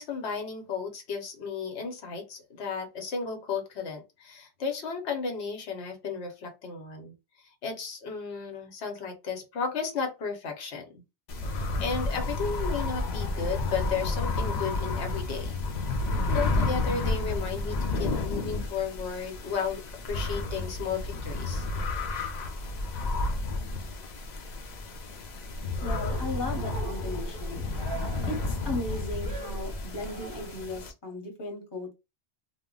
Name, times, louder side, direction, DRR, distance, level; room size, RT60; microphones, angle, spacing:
voice 1, 0.0-7.1 7.6-11.0 11.5-15.6 16.3-19.8 20.1-21.7, left 5 dB, 85° left, 1.0 m, -34 dB
sound 1, 11.3-30.9, left 2 dB, 55° left, 0.5 m, -31 dB
voice 2, 25.8-27.7 28.3-31.9, left 2 dB, 25° left, 0.9 m, -36 dB
Cheering, 25.8-30.7, right 3 dB, 25° right, 0.6 m, -43 dB
2.1 x 2.1 x 3.6 m
omnidirectional pair, 1.1 m